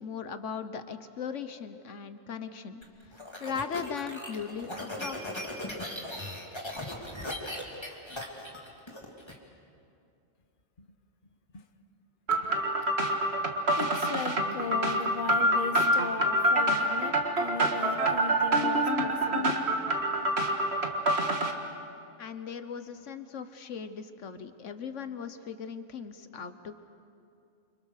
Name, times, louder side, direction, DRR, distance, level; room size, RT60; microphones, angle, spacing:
voice 1, 0.0-2.8 3.4-5.2 22.2-26.7, left 6 dB, 90° left, 10 dB, 1.4 m, -38 dB
sound 1, 2.8-9.3, left 1 dB, 20° left, 2.9 m, -38 dB
sound 2, 12.3-21.5, right 1 dB, 60° right, 2.0 m, -26 dB
voice 2, 13.8-19.8, left 5 dB, 45° left, 7 dB, 1.3 m, -37 dB
29.0 x 26.5 x 6.6 m, 2.5 s
omnidirectional pair, 1.2 m